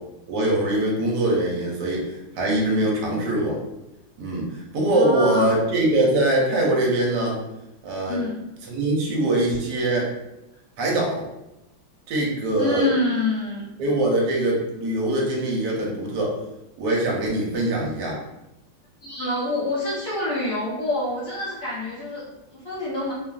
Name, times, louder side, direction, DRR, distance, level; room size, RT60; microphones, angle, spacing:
voice 1, 0.3-3.6 4.2-4.5 4.7-7.4 7.8-8.2 8.7-10.1 10.8-11.3 12.1-12.9 13.8-16.4 16.8-18.2, right 1 dB, 70° right, -2 dB, 1.2 m, -22 dB
voice 2, 4.9-5.7 8.1-8.4 12.6-13.7 19.0-23.1, left 2 dB, 55° left, -9 dB, 1.0 m, -27 dB
3.2 x 2.4 x 2.3 m, 0.93 s
omnidirectional pair, 2.1 m